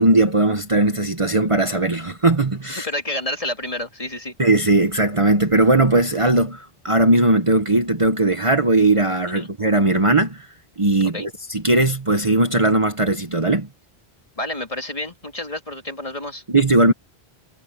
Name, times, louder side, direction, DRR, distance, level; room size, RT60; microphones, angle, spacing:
voice 1, 0.0-2.9 4.4-10.5 10.8-13.7 16.5-16.9, right 2 dB, 30° right, 1.2 m, -18 dB
voice 2, 2.8-4.3 9.3-9.5 11.1-11.3 14.4-16.4, left 1 dB, 35° left, 2.9 m, -29 dB
omnidirectional pair, 1.1 m